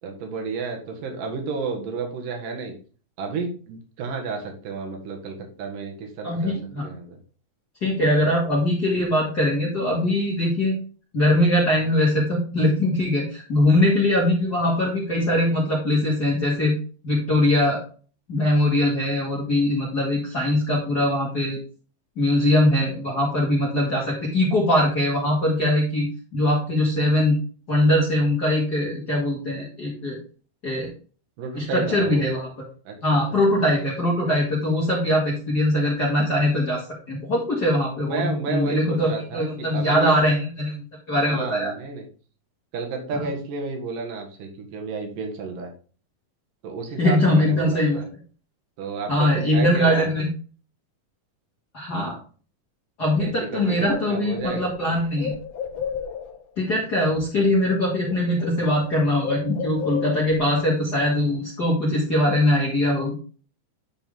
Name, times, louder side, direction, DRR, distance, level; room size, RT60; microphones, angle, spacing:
voice 1, 0.0-2.7 3.2-6.5 6.8-7.2 31.4-32.3 32.9-33.2 38.0-40.1 41.3-42.1 42.7-45.7 46.6-48.1 48.8-50.3 53.2-54.7, right 4 dB, 70° right, 1 dB, 3.2 m, -32 dB
voice 2, 6.2-6.8 7.8-10.8 11.1-16.7 17.0-17.8 18.3-21.6 22.2-27.4 27.7-30.2 30.6-30.9 31.6-32.5 33.0-41.7 43.1-43.3 47.0-48.0 49.1-50.3 51.7-52.2 53.0-55.3 56.6-63.2, left 1 dB, 35° left, -6 dB, 2.1 m, -22 dB
Bird, 53.6-53.7 53.9-56.5 57.5-57.8 58.0-60.5, left 7 dB, 70° left, 1.6 m, -34 dB
10.0 x 4.5 x 3.6 m, 0.39 s
omnidirectional pair, 4.0 m